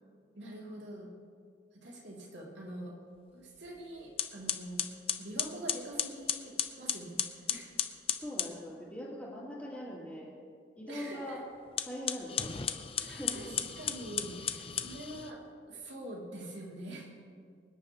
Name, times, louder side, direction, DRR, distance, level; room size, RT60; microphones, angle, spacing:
voice 1, 0.3-1.1 1.7-3.0 3.3-4.9 5.2-7.2 7.5-7.8 10.9-11.4 13.0-13.5 13.8-15.4 15.7-17.1, right 1 dB, 75° right, -3 dB, 2.8 m, -44 dB
sound 1, 3.6-3.8 4.2-8.6 11.7-15.3, left 8 dB, 30° left, 0.6 m, -35 dB
voice 2, 8.1-10.3 10.8-11.4 11.8-12.7 13.1-13.5, equal, 5° left, -12 dB, 2.9 m, -42 dB
25.5 x 10.5 x 3.0 m, 2.2 s
head